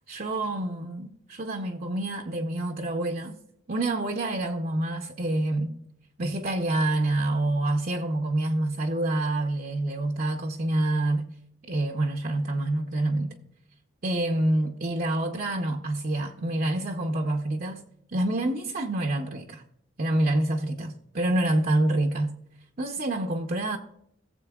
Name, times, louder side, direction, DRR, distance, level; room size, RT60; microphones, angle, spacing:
voice 1, 0.1-3.4 3.7-5.8 6.2-11.2 11.7-13.3 14.0-17.8 18.1-19.6 20.0-22.3 22.8-23.8, right 1 dB, 45° right, 0.7 m, -27 dB
17.5 x 7.5 x 2.3 m
head